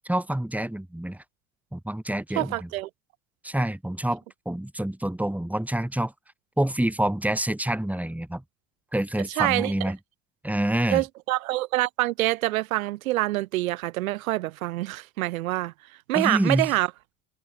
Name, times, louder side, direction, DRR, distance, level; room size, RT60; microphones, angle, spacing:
voice 1, 0.0-1.2 1.7-2.7 3.4-6.1 6.6-8.4 8.9-10.0 10.4-11.0 16.1-16.7, right 1 dB, 5° right, 4.7 m, -27 dB
voice 2, 2.4-2.9 9.4-9.7 10.9-15.7 16.1-16.9, right 17 dB, 80° right, 7.9 m, -26 dB
hypercardioid pair, 85°, 41 cm